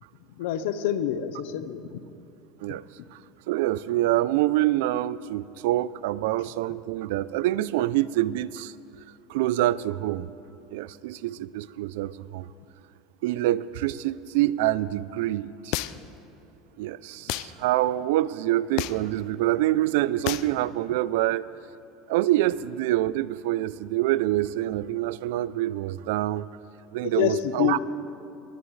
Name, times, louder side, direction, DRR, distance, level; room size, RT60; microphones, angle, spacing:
voice 1, 0.3-2.0 2.7-2.8 27.0-27.8, left 11 dB, 80° left, 11 dB, 0.8 m, -27 dB
voice 2, 3.5-8.7 9.3-10.3 10.7-12.5 13.2-15.8 16.8-21.5 22.1-26.5 26.9-27.8, right 15 dB, 80° right, 18 dB, 0.4 m, -26 dB
sound 1, 15.7-16.2 17.3-17.5 18.8-19.1 20.3-20.5, left 16 dB, 55° left, 0.4 m, -30 dB
21.5 x 16.5 x 3.2 m, 2.9 s
cardioid pair, 170°, 0 cm